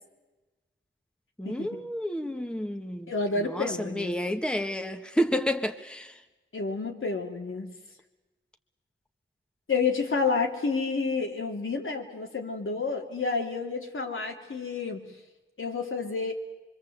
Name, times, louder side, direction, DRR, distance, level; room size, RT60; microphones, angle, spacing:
voice 1, 1.4-6.2, equal, 5° left, 6 dB, 1.6 m, -30 dB
voice 2, 3.1-4.2 6.5-7.7 9.7-15.0 15.6-16.3, left 4 dB, 80° left, 1 dB, 3.4 m, -29 dB
25.0 x 24.5 x 8.1 m, 1.2 s
wide cardioid pair, 65°, 20 cm